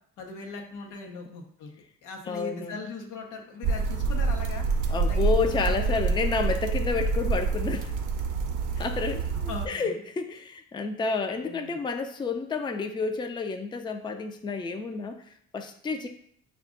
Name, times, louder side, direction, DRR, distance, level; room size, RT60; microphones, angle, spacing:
voice 1, 0.2-1.7 2.0-6.0 8.7-10.0 11.3-11.8, left 4 dB, 90° left, 3 dB, 0.8 m, -40 dB
voice 2, 2.3-2.9 4.9-7.9 8.8-16.1, left 4 dB, 15° left, 6 dB, 0.4 m, -30 dB
sound 1, 3.6-9.7, right 4 dB, 90° right, 0.5 m, -27 dB
5.0 x 2.4 x 3.6 m, 0.67 s
cardioid pair, 90°, 30 cm